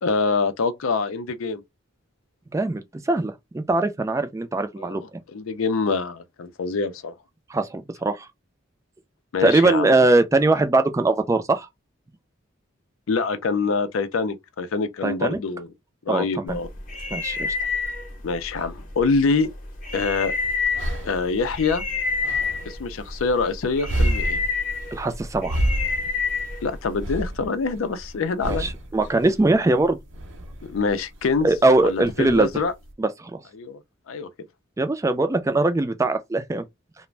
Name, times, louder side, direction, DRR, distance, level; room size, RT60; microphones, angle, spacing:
voice 1, 0.0-1.6 4.8-7.1 9.3-9.9 13.1-15.7 16.1-16.7 18.2-19.5 19.9-20.3 21.0-21.8 22.7-24.4 26.6-28.7 30.6-31.5 31.8-32.7 33.5-33.8 34.1-34.3, left 4 dB, 90° left, 0.5 m, -25 dB
voice 2, 2.5-5.0 7.5-8.3 9.4-11.7 15.0-15.4 16.1-16.6 17.1-17.5 24.9-25.6 28.4-30.0 31.4-32.5 33.0-33.4 34.8-36.6, right 2 dB, 15° right, 0.3 m, -21 dB
sound 1, 16.5-27.1, left 4 dB, 40° left, 0.7 m, -29 dB
sound 2, 19.9-32.9, right 1 dB, 70° right, 0.6 m, -31 dB
2.4 x 2.1 x 3.1 m
head